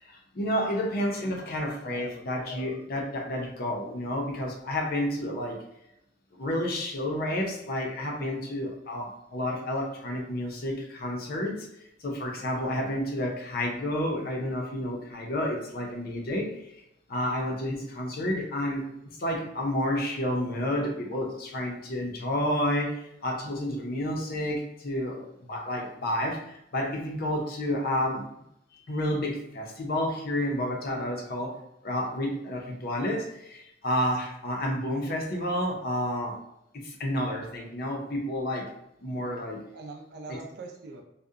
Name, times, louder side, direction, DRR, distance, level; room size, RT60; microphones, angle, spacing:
voice 1, 0.0-5.6 6.3-11.7 12.0-16.6 17.1-18.9 19.2-28.2 28.7-31.6 31.8-36.4 36.7-38.7 39.0-39.6 40.3-40.4, left 1 dB, 50° left, 0 dB, 0.5 m, -30 dB
voice 2, 1.9-2.2 39.2-41.0, right 3 dB, 55° right, 2 dB, 0.4 m, -44 dB
2.7 x 2.1 x 2.4 m, 0.81 s
head